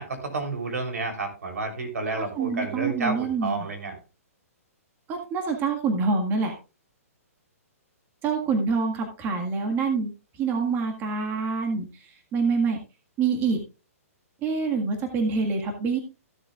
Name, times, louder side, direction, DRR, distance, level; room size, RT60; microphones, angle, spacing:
voice 1, 0.0-4.0, right 3 dB, 85° right, 5 dB, 3.5 m, -30 dB
voice 2, 2.1-3.7 5.1-6.5 8.2-10.1 10.4-12.8 13.2-13.6 14.4-16.0, right 4 dB, 25° right, 3 dB, 1.7 m, -26 dB
15.0 x 7.4 x 2.4 m, 0.31 s
hypercardioid pair, 145°, 8 cm